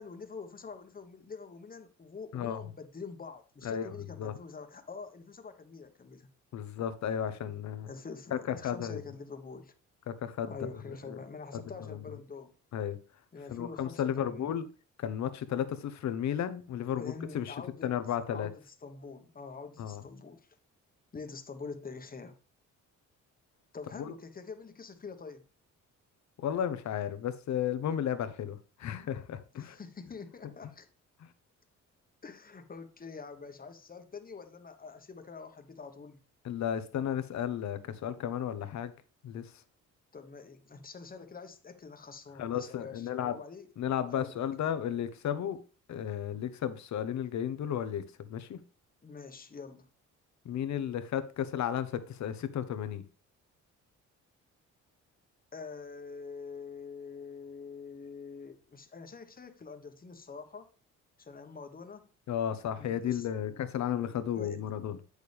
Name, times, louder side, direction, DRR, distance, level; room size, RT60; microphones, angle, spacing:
voice 1, 0.0-6.3 7.9-9.7 10.5-12.5 13.3-14.6 16.9-17.9 18.3-20.5 21.1-22.4 23.7-25.4 29.5-30.9 32.2-36.2 40.1-43.7 44.0-44.3 49.0-49.9 55.5-60.7 61.2-62.1 62.8-63.6 64.0-64.6, left 4 dB, 30° left, 1.3 m, -45 dB
voice 2, 2.3-2.7 3.6-4.3 6.5-7.9 8.3-9.0 10.1-11.2 11.5-11.6 11.9-12.2 12.7-13.0 13.5-14.7 15.0-17.6 17.8-18.5 19.8-20.0 23.9-24.1 26.4-29.8 36.4-38.9 39.2-39.5 42.4-43.4 43.8-45.6 45.9-48.6 50.4-53.0 62.3-65.0, left 9 dB, 65° left, 1.0 m, -34 dB
8.3 x 6.5 x 3.4 m
cardioid pair, 90°, 30 cm